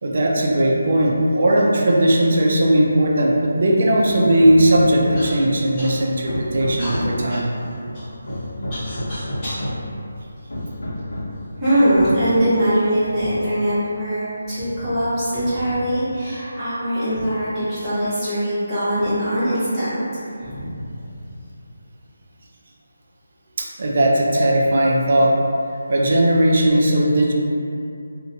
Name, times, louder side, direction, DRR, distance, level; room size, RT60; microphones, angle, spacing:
voice 1, 0.0-7.5 23.6-25.3 25.9-27.3, right 1 dB, 45° right, -2 dB, 0.4 m, -17 dB
Hammer, 4.1-5.5 5.9-7.3 7.9-9.9 10.5-11.4, left 1 dB, 85° left, 0.7 m, -30 dB
Human voice / Cough, 5.1-5.3 5.8-6.3 6.8-9.7 10.4-11.2 11.9-12.0 12.7-13.1, equal, 20° left, 0.8 m, -35 dB
voice 2, 11.5-20.0 20.4-20.7, equal, 10° right, -17 dB, 0.9 m, -21 dB
2.6 x 2.1 x 2.6 m, 2.5 s
figure-of-eight pair, 175°, 0 cm